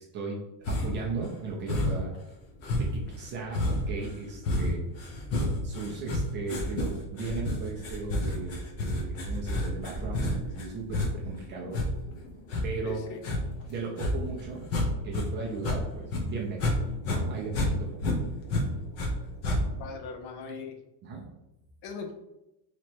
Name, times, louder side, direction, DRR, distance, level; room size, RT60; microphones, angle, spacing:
sound 1, 0.6-1.1 1.7-2.2 2.6-15.3 15.5-16.8 17.0-19.1 19.4-19.9, left 1 dB, 30° left, 0.7 m, -30 dB
voice 1, 0.7-2.1 2.7-4.8 5.6-11.9 12.6-13.0 13.7-14.6 15.0-18.0 21.0-21.3, right 4 dB, 25° right, -2 dB, 0.4 m, -37 dB
voice 2, 12.8-13.2 19.8-20.8 21.8-22.1, left 5 dB, 65° left, 4 dB, 0.8 m, -39 dB
3.1 x 3.0 x 4.4 m, 0.94 s
cardioid pair, 165°, 47 cm